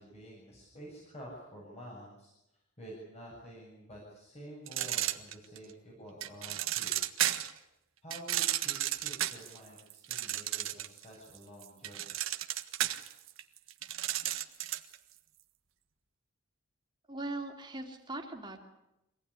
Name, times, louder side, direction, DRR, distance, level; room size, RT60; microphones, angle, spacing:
voice 1, 0.0-7.0 8.0-12.1, equal, 35° left, -3 dB, 7.4 m, -49 dB
sound 1, 4.7-5.7 6.2-7.6 8.1-11.0 11.4-15.0, right 12 dB, 80° right, 1.5 m, -33 dB
voice 2, 17.1-18.6, right 2 dB, 25° right, 2 dB, 3.3 m, -40 dB
26.0 x 18.0 x 10.0 m, 0.91 s
head